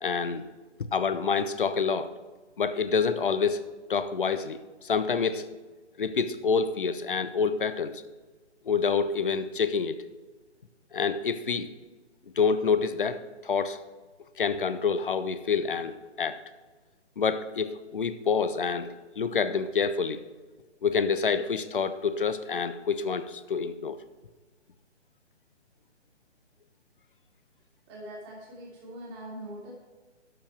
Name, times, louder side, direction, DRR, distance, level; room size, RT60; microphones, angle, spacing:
voice 1, 0.0-0.4 0.8-2.1 2.6-5.5 6.0-8.0 8.6-10.0 10.9-11.7 12.4-13.8 14.4-16.4 17.2-20.2 20.8-24.0, left 5 dB, 45° left, 12 dB, 0.7 m, -27 dB
voice 2, 27.9-29.7, right 1 dB, 20° right, -4 dB, 2.9 m, -42 dB
12.0 x 7.2 x 4.6 m, 1.3 s
figure-of-eight pair, 140°, 36 cm